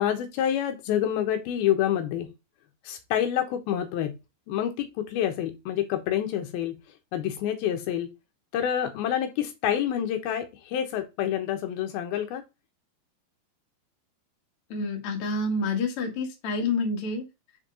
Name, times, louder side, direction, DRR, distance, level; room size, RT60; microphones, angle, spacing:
voice 1, 0.0-2.3 2.8-4.1 4.5-6.8 7.1-8.1 8.5-12.4, left 10 dB, 80° left, 6 dB, 2.7 m, -27 dB
voice 2, 14.7-17.2, left 3 dB, 50° left, 1 dB, 1.7 m, -28 dB
5.4 x 5.1 x 3.7 m, 0.24 s
omnidirectional pair, 4.4 m